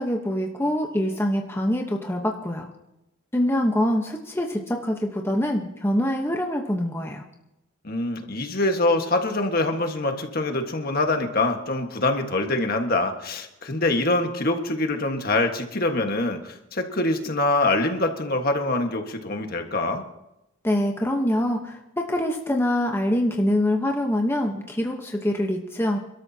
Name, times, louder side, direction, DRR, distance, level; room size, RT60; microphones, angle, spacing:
voice 1, 0.0-2.7 3.3-7.2 20.6-26.0, left 1 dB, 10° left, 1 dB, 1.1 m, -24 dB
voice 2, 7.8-20.0, left 2 dB, 50° left, 4 dB, 1.6 m, -24 dB
28.5 x 13.0 x 2.9 m, 0.89 s
head